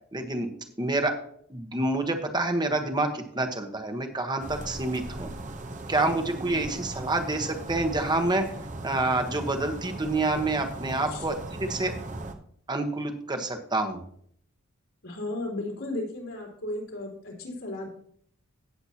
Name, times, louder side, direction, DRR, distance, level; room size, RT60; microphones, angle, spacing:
voice 1, 0.1-0.5 0.8-1.1 1.5-5.3 5.9-8.4 8.8-11.9 12.7-14.0, right 2 dB, 20° right, 6 dB, 1.2 m, -28 dB
sound 1, 4.4-12.3, right 2 dB, 35° right, 0.9 m, -38 dB
voice 2, 15.0-17.9, left 2 dB, 70° left, -2 dB, 3.7 m, -34 dB
16.5 x 8.0 x 2.9 m, 0.64 s
head